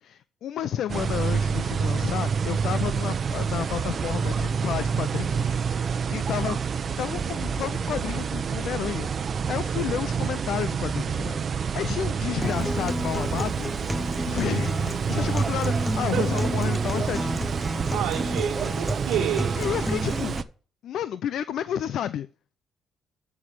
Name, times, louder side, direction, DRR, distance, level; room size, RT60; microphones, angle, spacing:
voice 1, 0.0-13.7 14.0-17.3 19.6-20.4 20.8-22.3, left 10 dB, 75° left, 0.5 m, -31 dB
sound 1, 0.9-20.4, right 6 dB, 50° right, 0.8 m, -28 dB
voice 2, 9.7-10.0 16.1-16.4 17.9-19.6, right 9 dB, 90° right, 1.7 m, -29 dB
Acoustic guitar, 12.4-20.4, left 1 dB, 5° left, 0.8 m, -32 dB
13.5 x 4.8 x 8.4 m
supercardioid pair, 70°, 0 cm